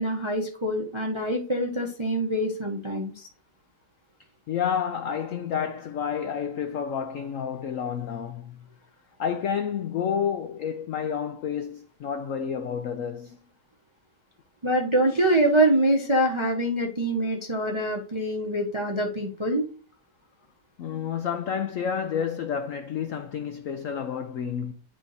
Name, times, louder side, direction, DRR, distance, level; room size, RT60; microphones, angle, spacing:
voice 1, 0.0-3.3 14.6-19.6, right 1 dB, 30° right, 0.5 m, -25 dB
voice 2, 4.5-8.6 9.2-13.4 20.8-24.7, left 7 dB, 85° left, 0.7 m, -30 dB
10.0 x 3.7 x 4.0 m
omnidirectional pair, 2.0 m